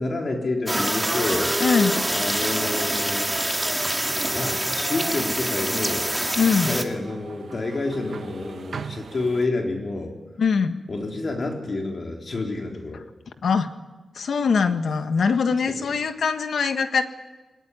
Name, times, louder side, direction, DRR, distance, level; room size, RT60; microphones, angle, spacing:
voice 1, 0.0-1.5 2.1-3.3 4.3-6.1 6.6-10.1 10.9-13.0, left 2 dB, 45° left, 1 dB, 4.1 m, -28 dB
sound 1, 0.7-6.8, right 1 dB, 10° right, 2.1 m, -25 dB
voice 2, 1.6-2.0 6.4-6.8 10.4-10.8 13.4-13.7 14.1-17.0, left 5 dB, 70° left, 8 dB, 1.6 m, -22 dB
sound 2, 4.1-9.5, right 6 dB, 70° right, 1.2 m, -41 dB
21.0 x 19.5 x 9.6 m, 1.2 s
wide cardioid pair, 110°, 0 cm